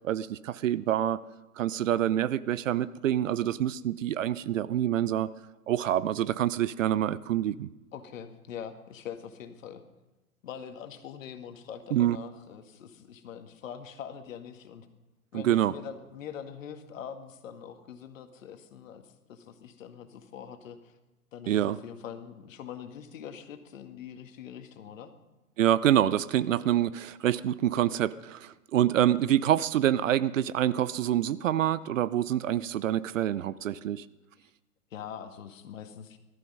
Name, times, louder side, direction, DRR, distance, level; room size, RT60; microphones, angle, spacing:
voice 1, 0.0-1.2 1.6-5.3 5.7-7.7 11.9-12.2 15.3-15.7 21.5-21.8 25.6-34.0, right 11 dB, 55° right, 18 dB, 0.7 m, -26 dB
voice 2, 7.9-9.8 10.4-14.9 15.3-21.0 21.3-25.1 34.9-36.2, left 8 dB, 55° left, 8 dB, 1.9 m, -43 dB
18.5 x 13.0 x 5.5 m, 1.1 s
hypercardioid pair, 125°, 46 cm